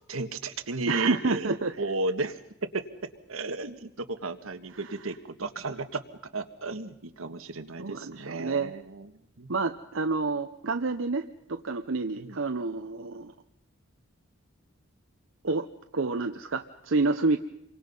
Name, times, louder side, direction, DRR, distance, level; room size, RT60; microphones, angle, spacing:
voice 1, 0.0-2.8 3.3-6.0 6.3-9.1 9.4-9.5 12.2-12.4, right 3 dB, 90° right, 8 dB, 1.6 m, -34 dB
voice 2, 0.9-1.7 7.8-8.7 9.5-13.3 15.4-15.7 15.9-17.4, right 3 dB, 70° right, 7 dB, 0.8 m, -28 dB
28.5 x 24.0 x 5.5 m, 0.80 s
head